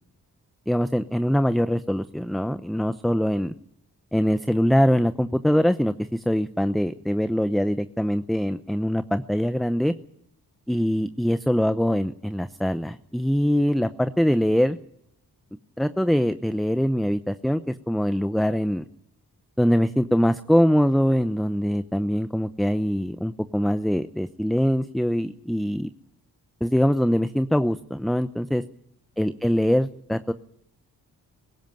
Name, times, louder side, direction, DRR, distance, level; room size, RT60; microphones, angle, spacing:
voice 1, 0.7-3.5 4.1-9.9 10.7-14.8 15.8-18.8 19.6-25.9 26.6-28.6 29.2-30.3, equal, ahead, 11 dB, 0.8 m, -23 dB
18.0 x 16.0 x 9.2 m, 0.75 s
cardioid pair, 45°, 39 cm